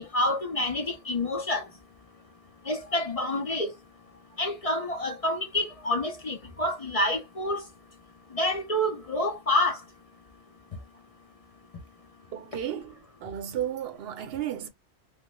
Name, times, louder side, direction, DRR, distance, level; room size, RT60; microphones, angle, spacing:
voice 1, 0.0-1.6 2.7-3.7 4.4-7.6 8.3-9.8, left 1 dB, 40° left, 0.6 m, -28 dB
voice 2, 12.3-14.7, right 10 dB, 70° right, 0.9 m, -34 dB
3.1 x 2.1 x 3.0 m
omnidirectional pair, 1.1 m